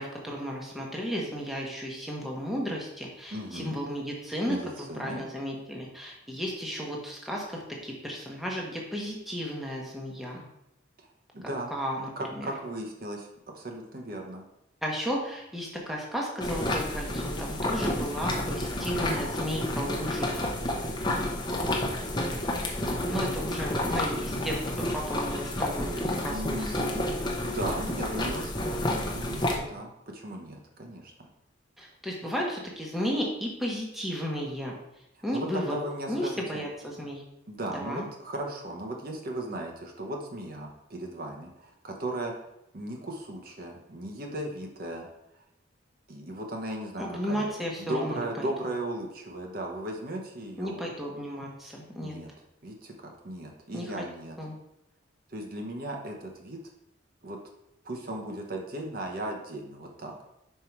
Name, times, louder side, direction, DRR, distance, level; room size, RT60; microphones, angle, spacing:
voice 1, 0.0-10.4 11.7-12.5 14.8-20.3 23.1-26.9 31.8-34.7 35.2-35.8 36.1-37.2 37.7-38.0 47.0-48.5 50.6-52.2 53.7-53.9 54.4-54.5, equal, ahead, -2 dB, 1.0 m, -34 dB
voice 2, 3.3-3.8 4.5-5.2 11.3-11.7 12.2-13.3 13.5-14.4 26.3-31.3 35.3-36.6 37.5-42.3 42.7-45.1 46.1-47.5 47.8-50.8 52.0-52.3 52.6-54.4 55.3-56.6 57.2-57.4 57.8-60.1, right 1 dB, 50° right, 1 dB, 0.9 m, -36 dB
sound 1, 16.4-29.6, left 1 dB, 20° left, 0.8 m, -30 dB
5.6 x 4.5 x 4.6 m, 0.83 s
head